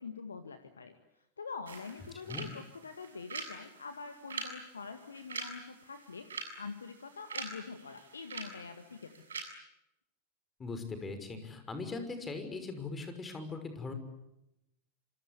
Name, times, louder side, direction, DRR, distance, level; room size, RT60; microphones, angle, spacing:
voice 1, 0.0-6.3 6.5-9.4, left 5 dB, 75° left, 8 dB, 2.0 m, -45 dB
sound 1, 1.7-9.4, right 4 dB, 70° right, 7.1 m, -45 dB
voice 2, 10.6-13.9, left 3 dB, 15° left, 8 dB, 5.9 m, -40 dB
27.5 x 25.5 x 8.4 m, 0.89 s
figure-of-eight pair, 90°, 0 cm